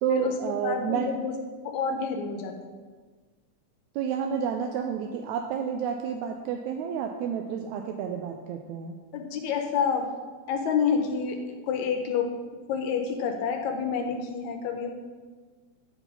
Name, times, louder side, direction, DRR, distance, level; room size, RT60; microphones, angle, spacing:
voice 1, 0.0-1.1 4.0-9.0, right 7 dB, 80° right, 4 dB, 1.9 m, -30 dB
voice 2, 0.6-1.3 1.6-2.8 9.1-10.1 10.5-12.3 12.7-14.9, left 6 dB, 80° left, 4 dB, 1.9 m, -28 dB
9.9 x 4.5 x 5.5 m, 1.4 s
omnidirectional pair, 3.4 m